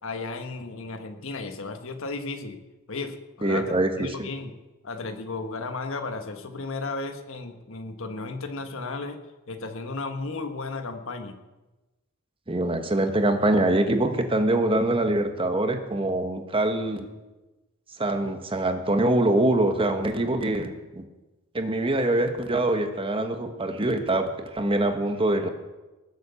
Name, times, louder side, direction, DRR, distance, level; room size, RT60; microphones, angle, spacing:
voice 1, 0.0-2.6 2.9-4.5 4.8-9.2 9.5-11.4, left 3 dB, 65° left, 6 dB, 1.4 m, -34 dB
voice 2, 3.4-4.3 12.5-17.1 18.0-21.0 21.5-25.5, right 1 dB, 25° right, 7 dB, 1.3 m, -24 dB
20.0 x 7.9 x 7.0 m, 1.1 s
head